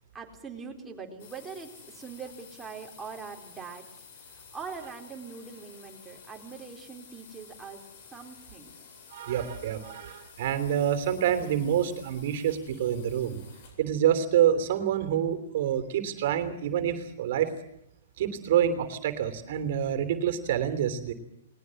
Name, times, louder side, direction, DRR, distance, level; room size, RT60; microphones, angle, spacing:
voice 1, 0.1-7.8 8.1-8.7, right 5 dB, 10° right, 2 dB, 4.2 m, -42 dB
sound 1, 1.2-13.9, left 6 dB, 50° left, 7.9 m, -52 dB
voice 2, 9.1-13.4 13.8-17.5 18.2-21.1, right 9 dB, 55° right, 10 dB, 3.2 m, -27 dB
21.0 x 19.5 x 7.7 m, 0.76 s
hypercardioid pair, 140°, 0 cm